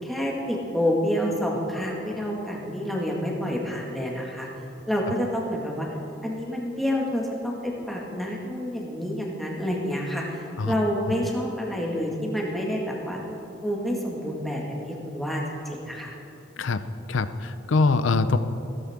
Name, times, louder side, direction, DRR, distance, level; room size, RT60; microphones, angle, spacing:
voice 1, 0.0-4.5 4.9-5.9 6.2-13.2 13.6-16.1, equal, ahead, -3 dB, 1.7 m, -28 dB
voice 2, 17.1-18.4, left 3 dB, 85° left, 12 dB, 0.6 m, -23 dB
15.5 x 13.5 x 3.6 m, 2.9 s
head